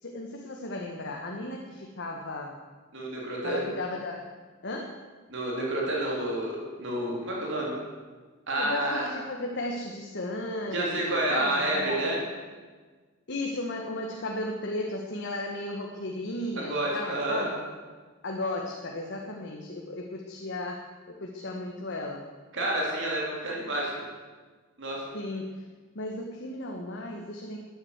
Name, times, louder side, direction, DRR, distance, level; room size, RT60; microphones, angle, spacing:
voice 1, 0.0-2.6 3.4-4.3 4.6-5.0 8.5-12.2 13.3-17.7 18.2-22.2 25.1-25.7 25.9-27.6, left 2 dB, 55° left, 1 dB, 1.5 m, -35 dB
voice 2, 2.9-3.6 5.3-7.7 8.5-9.0 10.7-12.2 16.6-17.5 22.5-23.9 24.8-25.0, right 1 dB, 60° right, -3 dB, 3.5 m, -29 dB
12.5 x 9.7 x 8.1 m, 1.4 s
head